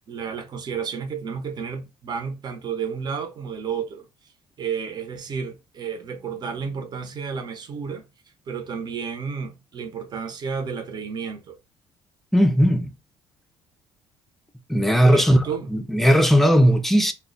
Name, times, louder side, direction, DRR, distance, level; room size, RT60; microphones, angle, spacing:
voice 1, 0.1-4.1 4.6-8.1 8.5-11.6 15.0-15.7, right 6 dB, 45° right, 0.7 m, -31 dB
voice 2, 12.3-12.9 14.7-15.4 15.7-17.1, equal, ahead, 0.5 m, -17 dB
2.1 x 2.1 x 3.7 m
supercardioid pair, 85°, 10 cm